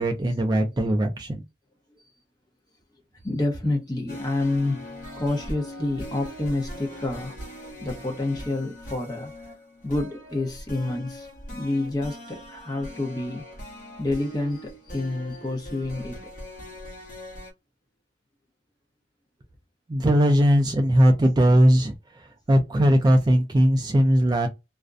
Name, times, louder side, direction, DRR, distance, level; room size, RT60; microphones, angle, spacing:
voice 1, 0.0-1.4 19.9-21.9 22.5-24.5, equal, 20° right, 0.3 m, -19 dB
voice 2, 3.2-7.5 7.8-9.3 9.8-13.4 14.0-16.2, left 2 dB, 20° left, 0.8 m, -28 dB
sound 1, 4.1-17.5, equal, 45° left, 1.0 m, -40 dB
2.4 x 2.1 x 2.4 m
head